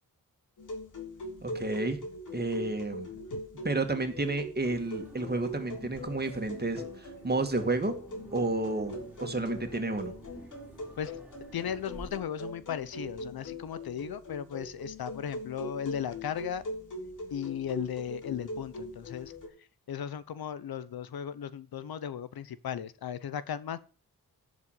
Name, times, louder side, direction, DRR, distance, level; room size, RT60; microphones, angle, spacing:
sound 1, 0.6-19.5, left 1 dB, 55° left, 3.5 m, -42 dB
voice 1, 1.4-2.0 2.3-3.1 3.6-8.0 8.3-10.1, right 2 dB, 25° right, 2.3 m, -31 dB
sound 2, 4.6-12.2, right 2 dB, 5° right, 3.4 m, -51 dB
voice 2, 11.5-16.6 17.3-19.3 19.9-23.8, left 9 dB, 80° left, 0.8 m, -36 dB
11.0 x 5.2 x 8.1 m
wide cardioid pair, 95°, 36 cm